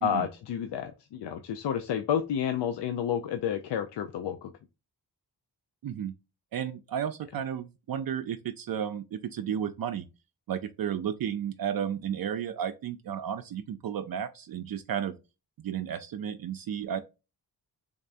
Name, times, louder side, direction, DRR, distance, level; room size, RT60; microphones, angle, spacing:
voice 1, 0.0-4.5, left 9 dB, 85° left, 0.5 m, -30 dB
voice 2, 5.8-6.1 6.5-10.1 10.5-15.2 15.6-17.0, right 9 dB, 60° right, 0.5 m, -33 dB
3.6 x 3.3 x 2.5 m
wide cardioid pair, 90°, 41 cm